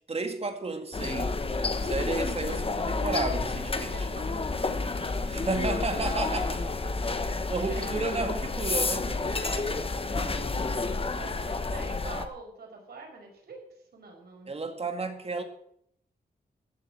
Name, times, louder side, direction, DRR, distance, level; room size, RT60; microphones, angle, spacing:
voice 1, 0.0-1.4 1.8-4.1 5.3-9.1 10.1-10.6 14.5-15.4, right 3 dB, 40° right, 2.2 m, -33 dB
sound 1, 0.9-12.3, left 3 dB, 35° left, 1.2 m, -30 dB
voice 2, 3.9-5.5 5.7-6.0 7.7-8.1 8.6-9.8 10.1-13.6 13.9-14.5, right 3 dB, 75° right, 5.6 m, -46 dB
14.5 x 7.9 x 7.6 m
wide cardioid pair, 90°, 17 cm